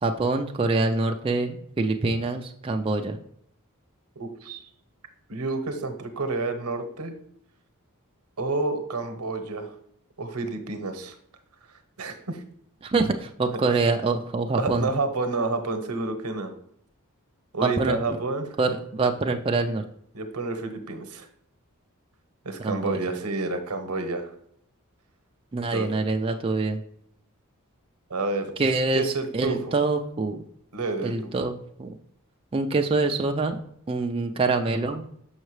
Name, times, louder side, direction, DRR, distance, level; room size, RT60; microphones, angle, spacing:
voice 1, 0.0-3.2 12.8-14.9 17.6-18.2 18.6-19.8 22.6-23.0 25.5-26.8 28.6-30.4 31.0-31.5 31.8-32.0 32.5-33.6 33.9-35.0, right 3 dB, 25° right, 4 dB, 0.3 m, -25 dB
voice 2, 4.2-4.6 5.3-7.1 8.4-9.7 10.2-11.1 12.0-12.4 14.6-16.5 17.5-18.5 20.1-21.3 22.4-24.3 25.7-25.9 28.1-28.5 28.9-29.6 30.7-31.3, right 3 dB, 90° right, 7 dB, 0.9 m, -29 dB
6.4 x 5.7 x 3.1 m, 0.69 s
head